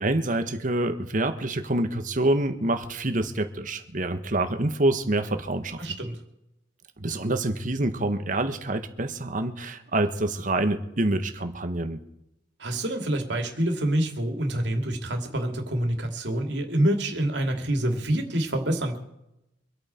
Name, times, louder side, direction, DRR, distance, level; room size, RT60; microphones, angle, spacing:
voice 1, 0.0-5.8 7.0-12.0, right 2 dB, 45° right, 8 dB, 1.3 m, -26 dB
voice 2, 5.8-6.2 12.6-19.0, right 1 dB, 75° right, 4 dB, 2.6 m, -26 dB
25.5 x 8.8 x 4.4 m, 0.85 s
head